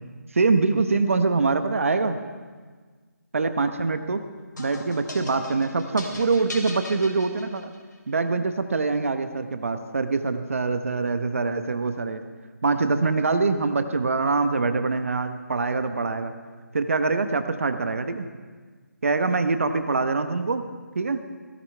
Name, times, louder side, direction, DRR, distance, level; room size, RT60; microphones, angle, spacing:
voice 1, 0.3-2.2 3.3-4.2 4.6-7.7 8.1-12.2 12.6-16.3 16.7-18.3 19.0-20.7 20.9-21.2, right 3 dB, 45° right, 9 dB, 0.9 m, -24 dB
sound 1, 4.6-7.9, left 1 dB, 85° left, 3.3 m, -38 dB
17.5 x 16.5 x 3.3 m, 1.5 s
figure-of-eight pair, 170°, 10 cm